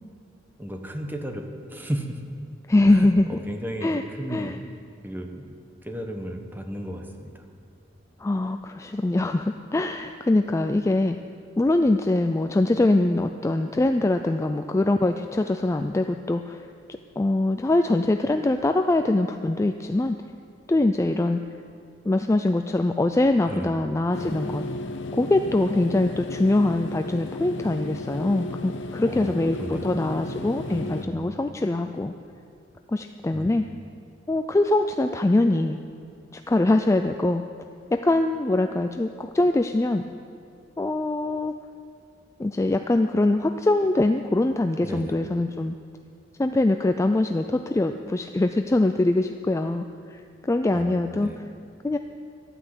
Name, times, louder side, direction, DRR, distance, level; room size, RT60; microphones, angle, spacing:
voice 1, 0.6-2.2 2.9-4.6 5.0-5.5 5.8-7.4 23.5-23.8 29.0-29.9 30.6-31.2 33.3-33.7 44.8-45.2 50.7-51.4, equal, 10° right, 4 dB, 1.0 m, -34 dB
voice 2, 2.7-3.3 3.8-4.0 4.3-4.6 8.2-11.2 11.6-16.6 17.2-20.2 20.7-21.4 22.0-24.6 25.1-32.1 32.9-33.6 34.3-35.8 36.3-37.4 37.9-40.0 40.8-41.5 42.4-45.7 46.4-51.3 51.8-52.0, left 2 dB, 15° left, 7 dB, 0.3 m, -23 dB
sound 1, 24.1-31.0, left 2 dB, 70° left, 0.8 m, -34 dB
12.0 x 9.1 x 8.0 m, 2.3 s
head